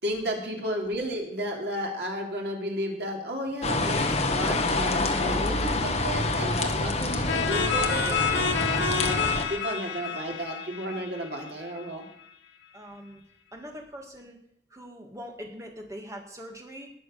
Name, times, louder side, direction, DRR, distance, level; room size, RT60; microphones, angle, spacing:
voice 1, 0.0-9.2 9.5-12.1, equal, 65° right, 0 dB, 3.3 m, -33 dB
sound 1, 3.6-9.4, left 2 dB, 35° left, 1.4 m, -27 dB
voice 2, 6.9-7.3 9.2-9.6 12.7-13.2 13.5-14.4 14.7-16.9, equal, 20° right, 1 dB, 2.4 m, -43 dB
sound 2, 7.3-11.8, left 5 dB, 85° left, 1.7 m, -29 dB
19.5 x 6.8 x 6.8 m, 0.73 s
head